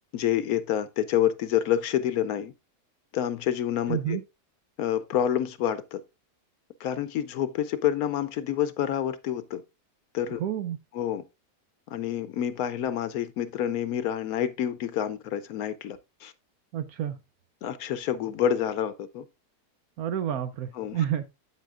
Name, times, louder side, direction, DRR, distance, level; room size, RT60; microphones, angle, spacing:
voice 1, 0.1-2.5 3.1-4.2 4.8-6.0 6.8-9.6 10.1-10.4 10.9-11.2 11.9-16.3 17.6-19.3 20.8-21.0, left 10 dB, 70° left, 1.0 m, -28 dB
voice 2, 3.9-4.2 10.4-10.8 16.7-17.2 20.0-21.2, right 10 dB, 70° right, 1.1 m, -29 dB
8.3 x 8.2 x 2.4 m
omnidirectional pair, 1.7 m